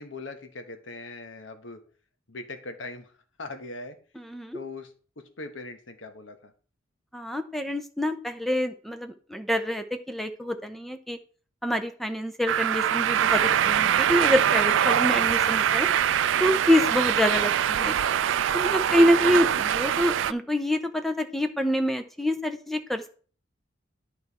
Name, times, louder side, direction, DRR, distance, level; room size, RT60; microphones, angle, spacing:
voice 1, 0.0-1.8 2.3-3.1 3.4-4.0 4.5-6.5 15.0-15.2 18.7-19.0, left 3 dB, 85° left, 7 dB, 1.2 m, -40 dB
voice 2, 4.2-4.6 7.1-11.2 11.6-15.9 16.4-18.0 18.5-23.1, equal, ahead, 7 dB, 0.6 m, -26 dB
sound 1, 12.5-20.3, right 9 dB, 80° right, 0.4 m, -23 dB
11.0 x 4.4 x 4.2 m, 0.41 s
head